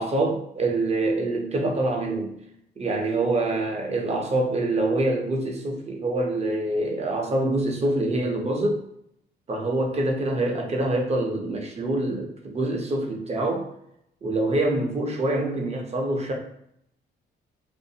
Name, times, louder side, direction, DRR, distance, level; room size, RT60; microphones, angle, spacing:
voice 1, 0.0-2.3 2.8-8.8 9.5-13.7 14.2-16.3, right 2 dB, 35° right, 1 dB, 0.7 m, -25 dB
2.5 x 2.5 x 2.7 m, 0.73 s
cardioid pair, 90°, 20 cm